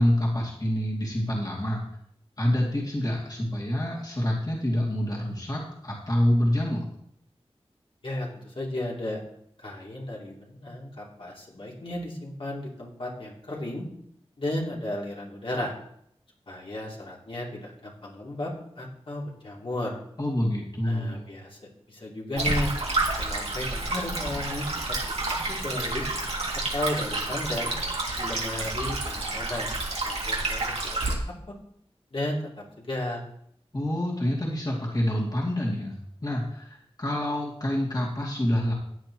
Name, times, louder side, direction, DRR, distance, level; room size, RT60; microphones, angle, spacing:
voice 1, 0.0-1.8 2.4-6.9 20.2-21.3 33.7-38.7, left 1 dB, 40° left, -4 dB, 2.6 m, -27 dB
voice 2, 8.0-9.2 9.6-13.9 14.4-15.7 16.5-20.0 20.8-21.6 21.9-22.7 23.2-25.0 25.5-26.1 26.7-27.7 28.2-29.7 30.0-31.2 32.1-32.4 32.8-33.2, left 1 dB, 60° left, -4 dB, 3.0 m, -34 dB
Stream, 22.4-31.1, right 2 dB, 85° right, 2.5 m, -29 dB
15.5 x 9.4 x 3.1 m, 0.70 s
wide cardioid pair, 65°, 10 cm